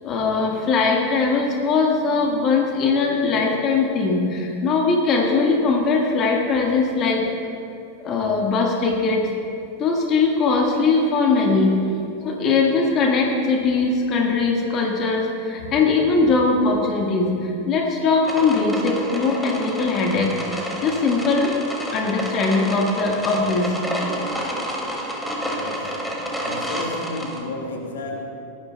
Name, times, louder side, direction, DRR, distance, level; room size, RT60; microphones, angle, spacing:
voice 1, 0.0-7.3 8.0-9.3 9.8-11.8 12.2-21.6 21.9-23.7, left 4 dB, 30° left, 0 dB, 1.7 m, -20 dB
sound 1, 18.2-27.4, equal, ahead, 2.5 m, -29 dB
voice 2, 25.0-26.1 26.4-28.3, left 2 dB, 60° left, 0 dB, 1.8 m, -33 dB
18.5 x 14.0 x 2.3 m, 2.6 s
figure-of-eight pair, 90°, 0 cm